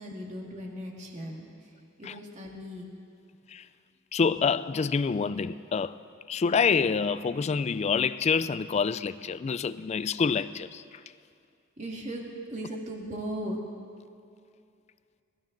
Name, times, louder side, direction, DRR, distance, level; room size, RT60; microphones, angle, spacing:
voice 1, 0.0-1.7 2.0-2.9 11.8-13.6, right 1 dB, 35° right, 2.0 m, -37 dB
voice 2, 4.1-6.0 6.3-11.0, left 5 dB, 35° left, 0.3 m, -27 dB
23.0 x 13.0 x 3.9 m
head